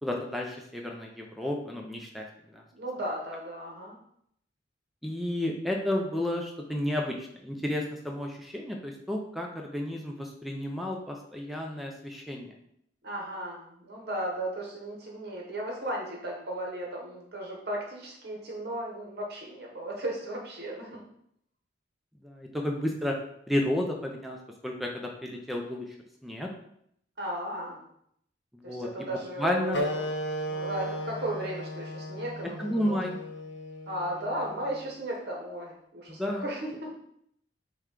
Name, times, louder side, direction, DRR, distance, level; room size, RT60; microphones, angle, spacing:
voice 1, 0.0-2.2 2.5-2.6 5.0-12.5 22.2-23.2 23.5-24.4 24.6-25.9 26.2-26.5 28.6-29.1 29.4-29.8 32.6-33.1 36.1-36.4, left 1 dB, ahead, 0 dB, 0.4 m, -32 dB
voice 2, 2.7-4.0 13.0-21.0 27.2-27.8 28.6-30.1 30.5-33.0 33.9-36.9, right 1 dB, 60° right, -2 dB, 1.0 m, -35 dB
Wind instrument woodwind instrument, 29.7-34.8, equal, 65° left, 0.5 m, -35 dB
5.8 x 2.3 x 3.7 m, 0.71 s
head